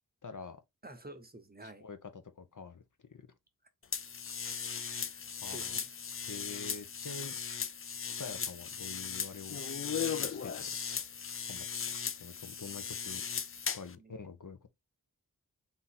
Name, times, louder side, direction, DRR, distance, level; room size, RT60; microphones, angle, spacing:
voice 1, 0.2-0.6 1.6-2.8 3.1-3.3 5.4-5.8 6.3-7.3 8.2-9.6 10.2-10.8 11.5-11.6 12.1-13.3 13.7-14.7, left 4 dB, 60° left, 0.9 m, -46 dB
voice 2, 0.8-1.8 4.8-5.9 14.0-14.2, right 1 dB, 25° right, 0.8 m, -50 dB
sound 1, 3.9-13.9, left 7 dB, 40° left, 0.4 m, -37 dB
3.7 x 2.8 x 4.2 m
wide cardioid pair, 65°, 36 cm